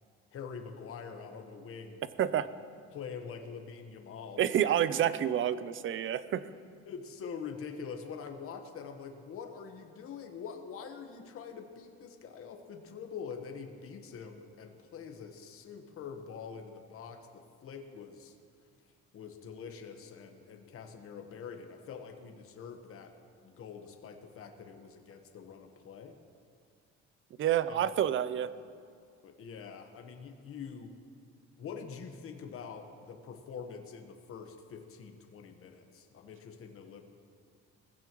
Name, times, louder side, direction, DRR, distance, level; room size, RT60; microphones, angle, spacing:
voice 1, 0.3-2.0 2.9-4.4 6.9-18.3 19.1-23.1 23.4-26.2 27.7-27.8 29.2-30.9 31.6-37.0, left 6 dB, 50° left, 5 dB, 1.2 m, -45 dB
voice 2, 4.4-6.5 27.4-28.5, right 10 dB, 45° right, 15 dB, 0.6 m, -28 dB
20.0 x 15.5 x 3.0 m, 2.3 s
cardioid pair, 125°, 29 cm